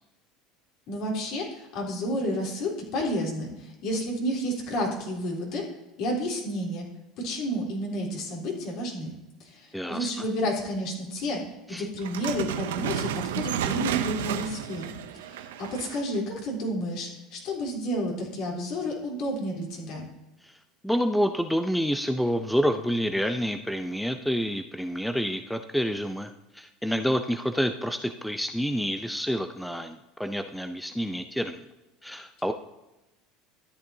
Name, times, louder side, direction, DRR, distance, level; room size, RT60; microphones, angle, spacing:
voice 1, 0.9-5.6 6.0-6.8 7.2-9.1 9.4-11.4 11.7-20.1, equal, 60° left, -3 dB, 3.6 m, -31 dB
voice 2, 9.7-10.2 11.7-11.9 20.4-20.6 20.8-31.6 32.0-32.5, equal, ahead, 8 dB, 0.5 m, -28 dB
sound 1, 12.0-16.2, right 10 dB, 85° right, 0.6 m, -32 dB
13.0 x 9.3 x 2.8 m, 1.0 s
supercardioid pair, 90°, 0 cm